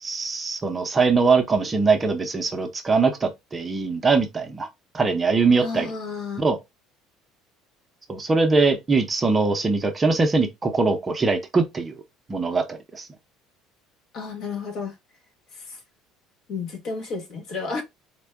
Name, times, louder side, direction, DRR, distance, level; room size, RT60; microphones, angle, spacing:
voice 1, 0.0-4.7 4.9-5.9 6.4-6.6 8.1-11.9 12.3-13.1, right 4 dB, 20° right, 0.6 m, -22 dB
voice 2, 5.6-6.4 14.1-14.9 15.6-15.8 16.5-17.8, left 4 dB, 50° left, 1.0 m, -32 dB
4.3 x 2.2 x 3.4 m
cardioid pair, 130°, 0 cm